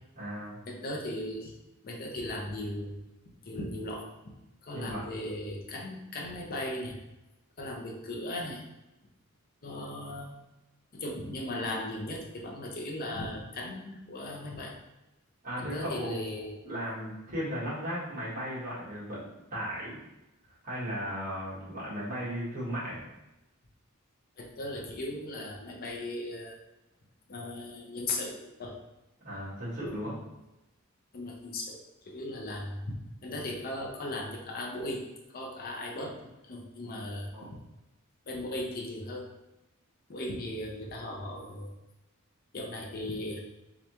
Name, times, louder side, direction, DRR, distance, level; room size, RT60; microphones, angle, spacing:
voice 1, 0.1-0.6 4.7-5.0 15.4-19.2 19.5-20.0 20.6-23.0 29.2-30.1 37.3-37.5, equal, 40° right, -8 dB, 1.4 m, -36 dB
voice 2, 0.7-1.5 1.8-3.0 3.3-4.1 4.6-7.0 7.6-8.7 9.6-10.3 10.9-14.7 15.6-16.5 24.4-26.6 27.3-28.8 31.1-31.8 32.1-35.1 35.3-36.2 36.4-37.6 38.3-39.3 40.1-41.7 42.5-43.4, left 1 dB, 45° left, -1 dB, 0.7 m, -37 dB
3.7 x 3.4 x 2.9 m, 0.95 s
head